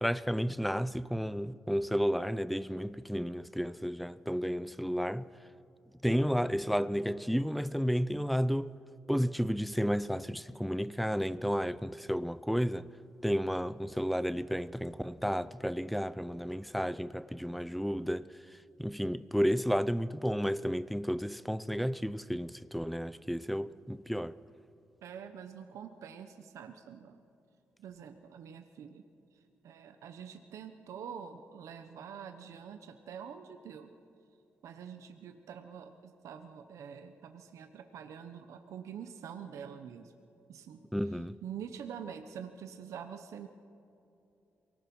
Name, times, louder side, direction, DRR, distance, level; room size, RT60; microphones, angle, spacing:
voice 1, 0.0-5.3 6.0-8.7 9.1-12.9 13.2-18.3 18.8-24.4 40.9-41.4, equal, ahead, 0.5 m, -32 dB
voice 2, 25.0-27.2 27.8-29.0 29.6-33.9 34.6-40.1 40.5-40.9 41.4-43.5, right 7 dB, 90° right, 1.0 m, -46 dB
23.5 x 18.5 x 6.1 m
cardioid pair, 100°, 5 cm